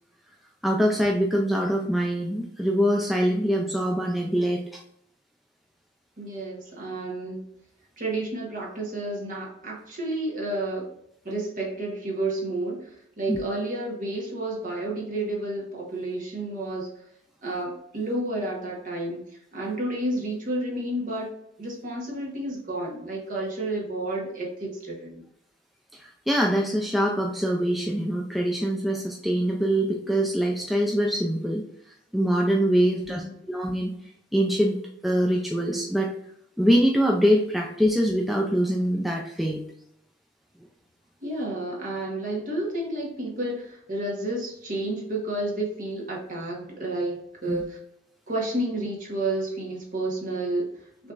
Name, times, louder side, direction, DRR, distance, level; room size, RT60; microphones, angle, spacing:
voice 1, 0.6-4.8 13.3-13.4 25.9-31.6 32.1-33.9 34.3-34.8 35.0-36.1 36.6-39.6 47.5-47.6, equal, ahead, -1 dB, 0.4 m, -24 dB
voice 2, 6.2-7.4 8.0-10.9 11.2-17.0 17.4-19.3 19.5-21.3 21.6-25.2 32.8-33.4 41.2-47.8 48.3-51.1, right 1 dB, 40° right, -2 dB, 1.5 m, -31 dB
6.1 x 3.3 x 2.5 m, 0.76 s
head